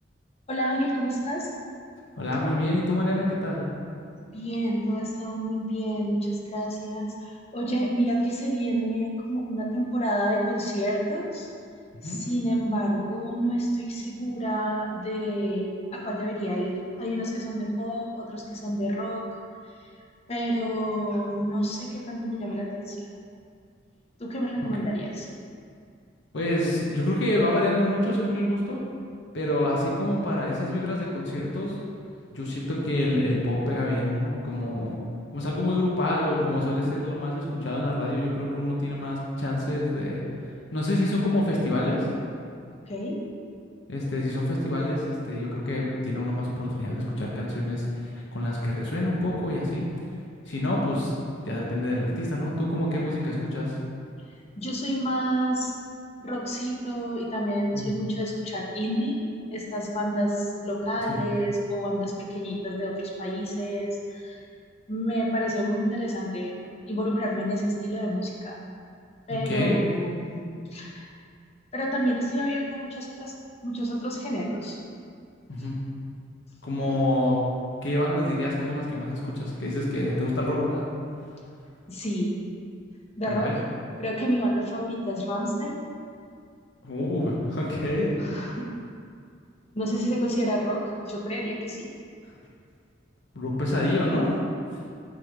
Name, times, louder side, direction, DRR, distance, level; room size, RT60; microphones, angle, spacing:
voice 1, 0.5-1.5 4.3-11.5 12.0-19.2 20.3-23.1 24.2-25.3 42.9-43.2 54.6-55.8 56.2-59.2 59.5-64.4 64.9-66.5 66.9-68.6 69.3-71.1 71.7-73.3 73.6-74.8 81.9-82.3 83.2-83.5 84.0-85.8 88.2-88.6 89.7-91.9, equal, 35° left, -2 dB, 0.9 m, -29 dB
voice 2, 2.2-3.7 12.0-12.2 24.6-24.7 26.3-28.8 29.3-31.8 32.3-35.0 35.3-40.2 40.7-42.1 43.9-49.9 50.5-51.1 51.4-53.8 57.7-57.9 61.1-61.2 69.3-69.8 75.5-75.8 76.6-77.4 77.8-80.8 83.3-83.5 86.8-88.6 93.3-94.3, left 1 dB, 70° left, -4 dB, 0.9 m, -27 dB
8.3 x 3.8 x 3.6 m, 2.3 s
head